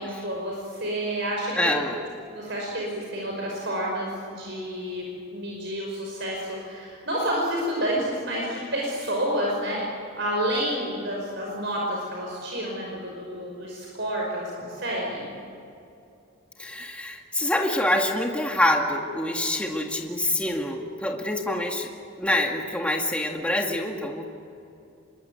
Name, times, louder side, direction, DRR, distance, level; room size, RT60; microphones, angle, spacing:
voice 1, 0.0-1.8 2.3-9.8 10.1-15.4, equal, 55° right, -2 dB, 5.4 m, -29 dB
voice 2, 1.6-2.0 16.6-21.9 22.2-24.2, left 1 dB, 5° left, 1 dB, 2.0 m, -26 dB
27.5 x 23.5 x 9.4 m, 2.7 s
head